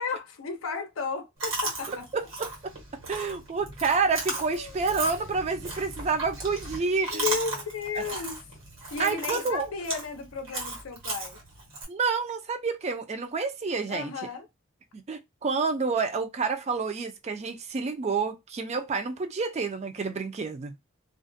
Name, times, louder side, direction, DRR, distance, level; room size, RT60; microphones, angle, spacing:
voice 1, 0.0-2.1 4.4-4.8 7.1-8.4 8.9-11.4 13.9-14.5, left 5 dB, 85° left, 0.5 m, -34 dB
Chewing mastication, 1.4-11.8, right 2 dB, 75° right, 1.3 m, -36 dB
voice 2, 1.9-2.5 3.1-7.3 9.0-9.7 11.9-14.1 14.9-20.8, right 4 dB, 30° right, 0.3 m, -29 dB
2.4 x 2.1 x 2.5 m
head